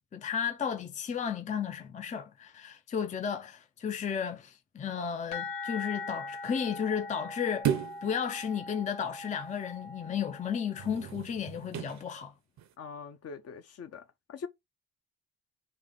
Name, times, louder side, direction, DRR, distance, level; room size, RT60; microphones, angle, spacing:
voice 1, 0.0-7.7 8.0-12.3, left 7 dB, 25° left, 0.5 m, -33 dB
sound 1, 5.3-10.9, left 3 dB, 85° left, 1.3 m, -41 dB
sound 2, 7.6-8.1 10.7-12.0 12.6-12.7, right 10 dB, 65° right, 0.8 m, -33 dB
voice 2, 12.8-14.0 14.3-14.5, left 5 dB, 50° left, 0.8 m, -42 dB
3.7 x 2.4 x 3.7 m
cardioid pair, 90°, 30 cm